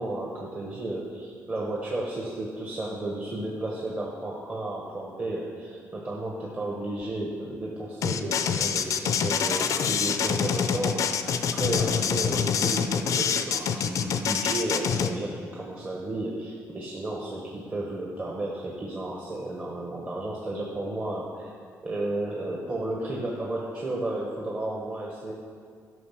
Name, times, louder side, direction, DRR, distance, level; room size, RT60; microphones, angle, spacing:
voice 1, 0.0-11.3 11.5-21.5 21.8-25.3, right 2 dB, 30° right, -3 dB, 1.3 m, -33 dB
sound 1, 8.0-15.1, left 7 dB, 60° left, 0.5 m, -26 dB
12.5 x 5.6 x 5.8 m, 2.1 s
cardioid pair, 120°, 6 cm